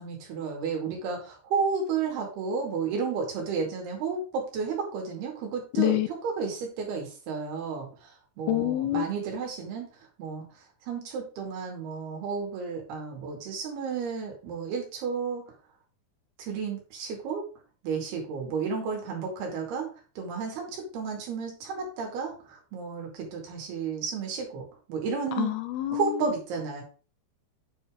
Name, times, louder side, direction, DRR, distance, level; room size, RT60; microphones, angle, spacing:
voice 1, 0.0-9.9 10.2-10.5 10.8-15.4 16.4-17.4 17.8-25.5 25.9-26.8, right 5 dB, 90° right, 4.3 m, -32 dB
voice 2, 5.8-6.1 8.5-9.1 25.4-26.3, left 15 dB, 80° left, 2.7 m, -26 dB
9.1 x 5.2 x 3.6 m
omnidirectional pair, 4.4 m